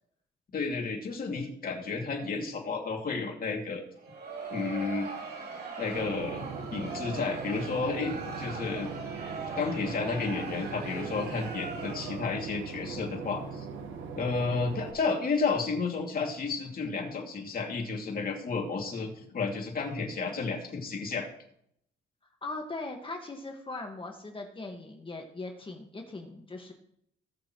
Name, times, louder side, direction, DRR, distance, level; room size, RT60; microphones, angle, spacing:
voice 1, 0.5-3.8 4.5-5.1 5.8-8.9 9.6-13.7 14.2-21.3, left 4 dB, 45° left, 1 dB, 2.7 m, -32 dB
Crowd, 4.0-12.5, right 4 dB, 50° right, 2.9 m, -40 dB
Boat Water vehicle / Engine, 5.9-14.9, right 5 dB, 75° right, 1.6 m, -40 dB
voice 2, 22.4-26.7, left 2 dB, 25° left, 3 dB, 1.8 m, -40 dB
19.5 x 6.8 x 3.2 m, 0.70 s
cardioid pair, 90°, 20 cm